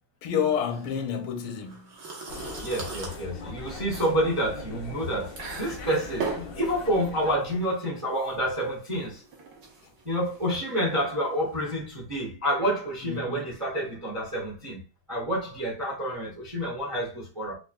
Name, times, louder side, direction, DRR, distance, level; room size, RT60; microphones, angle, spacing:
voice 1, 0.2-1.9 13.1-13.5, left 7 dB, 80° left, 1.4 m, -29 dB
sound 1, 0.7-11.6, right 4 dB, 55° right, 1.4 m, -40 dB
sound 2, 2.3-7.4, left 4 dB, 65° left, 0.9 m, -41 dB
voice 2, 2.6-9.2 10.0-14.8 15.1-17.5, equal, 25° right, 0.8 m, -28 dB
5.8 x 2.5 x 2.2 m
omnidirectional pair, 2.3 m